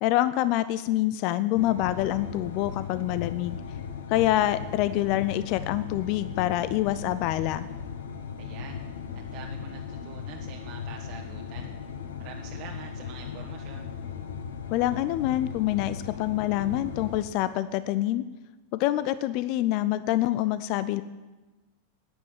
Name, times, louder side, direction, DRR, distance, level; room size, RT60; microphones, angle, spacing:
voice 1, 0.0-3.6 4.1-7.7 14.7-18.2 18.7-21.0, left 14 dB, 45° left, 15 dB, 0.5 m, -26 dB
sound 1, 1.5-17.2, left 7 dB, 60° left, 1.2 m, -37 dB
voice 2, 8.4-8.8 9.1-11.7 12.2-13.9, right 7 dB, 40° right, 0 dB, 1.4 m, -45 dB
13.5 x 9.8 x 8.4 m, 1.2 s
figure-of-eight pair, 90°, 0 cm